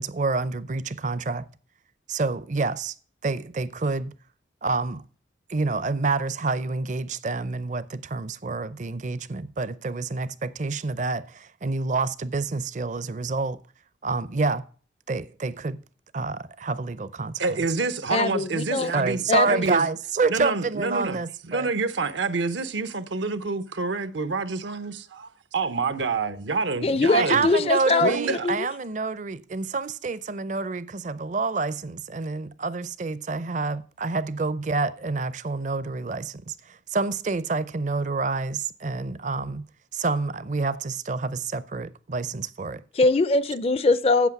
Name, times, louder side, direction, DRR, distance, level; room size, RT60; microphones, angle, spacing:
voice 1, 0.0-1.4 2.1-2.9 3.2-4.1 4.6-5.0 5.5-13.6 14.0-14.6 15.1-15.8 16.1-17.6 18.9-21.7 27.1-39.6 39.9-42.8, right 3 dB, 40° right, 0.5 m, -28 dB
voice 2, 17.4-19.8 20.3-21.2 21.5-27.5 28.0-28.5, right 4 dB, 80° right, 0.8 m, -28 dB
voice 3, 18.1-18.9 19.3-19.7 26.8-28.7 42.9-44.3, left 3 dB, 30° left, 0.4 m, -22 dB
8.2 x 7.7 x 5.9 m
head